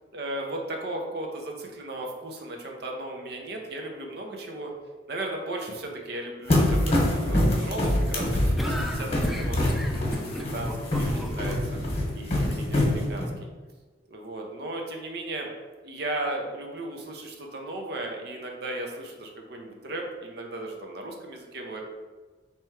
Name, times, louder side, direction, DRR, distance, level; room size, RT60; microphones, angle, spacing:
voice 1, 0.1-4.7 5.1-9.6 10.3-11.8 12.1-13.3 14.1-15.5 15.8-21.8, right 2 dB, 60° right, 1 dB, 0.6 m, -36 dB
sound 1, 6.5-13.3, left 1 dB, 35° left, 1.1 m, -25 dB
sound 2, 8.6-11.5, equal, ahead, 0.3 m, -35 dB
3.4 x 3.0 x 4.6 m, 1.3 s
head